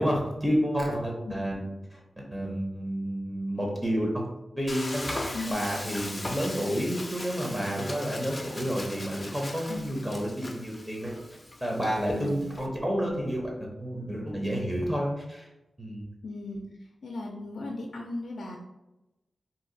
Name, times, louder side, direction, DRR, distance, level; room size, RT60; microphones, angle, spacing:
voice 1, 0.0-4.3 4.6-5.1 5.5-11.2 11.6-13.5 13.8-15.5 15.8-16.0, equal, 15° right, -1 dB, 0.7 m, -30 dB
Frying (food), 4.7-12.7, left 1 dB, 25° left, 0.5 m, -39 dB
voice 2, 12.1-12.4 16.2-18.6, left 2 dB, 80° left, 0 dB, 0.4 m, -37 dB
2.7 x 2.3 x 3.8 m, 0.97 s
cardioid pair, 65°, 0 cm